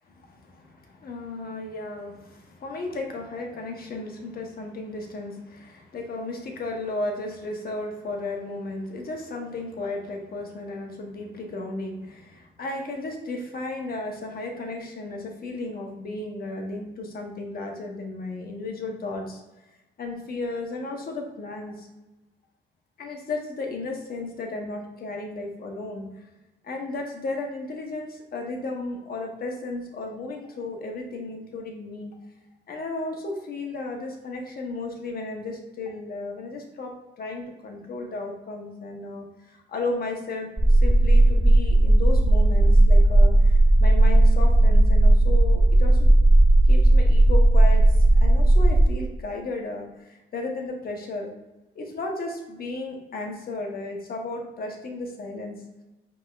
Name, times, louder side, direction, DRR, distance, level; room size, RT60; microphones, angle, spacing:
voice 1, 0.0-19.4 20.0-21.9 23.0-26.2 26.6-32.2 32.7-46.1 46.7-51.3 51.7-55.6, left 2 dB, 50° left, 2 dB, 1.1 m, -34 dB
sound 1, 40.6-48.8, right 1 dB, 10° right, 0.4 m, -16 dB
5.0 x 3.6 x 2.4 m, 1.1 s
cardioid pair, 90°, 20 cm